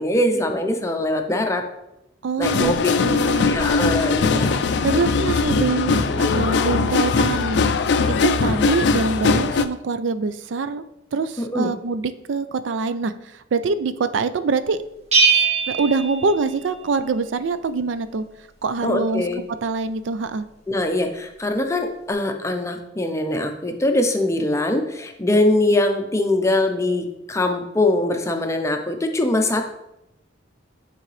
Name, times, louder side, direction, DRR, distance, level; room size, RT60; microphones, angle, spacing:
voice 1, 0.0-1.6 2.4-2.9 3.2-4.6 11.4-11.8 18.8-19.4 20.7-29.7, left 1 dB, 15° left, 5 dB, 0.6 m, -22 dB
voice 2, 2.2-2.7 3.0-3.5 4.3-4.4 4.8-7.6 8.0-10.8 11.1-14.8 15.3-15.4 15.7-18.2 18.6-19.2 19.6-20.5, right 4 dB, 80° right, 12 dB, 0.4 m, -24 dB
sound 1, 2.4-9.7, left 4 dB, 65° left, 0.4 m, -20 dB
Bell, 15.1-16.9, right 5 dB, 35° right, 1.2 m, -20 dB
9.2 x 3.9 x 3.2 m, 0.89 s
head